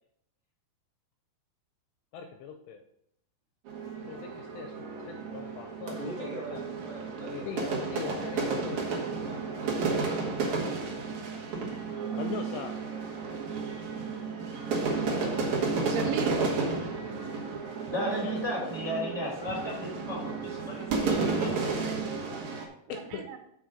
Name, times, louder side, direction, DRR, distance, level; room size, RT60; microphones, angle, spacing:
voice 1, 2.1-2.8 4.0-4.7 5.3-6.6 7.3-8.9 12.1-12.8 18.0-18.8 22.9-23.3, left 7 dB, 85° left, 5 dB, 2.5 m, -40 dB
sound 1, 3.7-22.7, right 4 dB, 65° right, 1.9 m, -32 dB
voice 2, 5.9-7.8 9.2-9.7, right 1 dB, 55° left, -5 dB, 1.5 m, -42 dB
voice 3, 15.8-16.6 17.0-17.2 21.8-22.4 22.9-23.4, right 6 dB, 85° right, 4 dB, 3.4 m, -37 dB
voice 4, 17.9-21.7, equal, 35° right, -3 dB, 1.1 m, -35 dB
7.6 x 5.1 x 5.0 m, 0.74 s
omnidirectional pair, 5.4 m